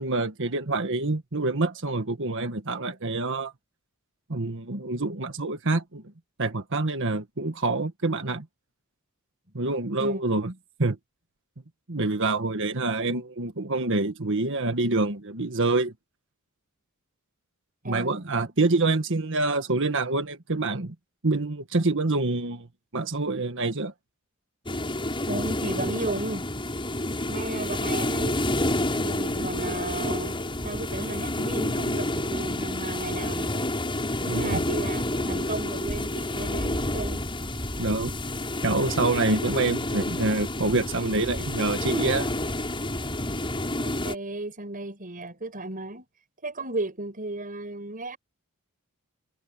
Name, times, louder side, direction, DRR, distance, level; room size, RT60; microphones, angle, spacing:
voice 1, 0.0-3.5 4.3-6.0 6.4-8.5 9.5-10.5 10.8-11.0 11.9-15.9 17.8-20.9 21.2-22.7 22.9-23.9 34.3-34.6 37.8-38.1 38.6-42.3, right 2 dB, 60° right, 1.6 m, -26 dB
voice 2, 10.0-10.4 17.8-18.2 25.2-26.5 27.3-28.5 28.9-30.4 30.6-33.7 34.2-37.2 43.8-46.1 46.4-48.2, right 2 dB, 40° right, 6.6 m, -34 dB
sound 1, 24.7-44.2, left 1 dB, 25° left, 7.4 m, -29 dB
head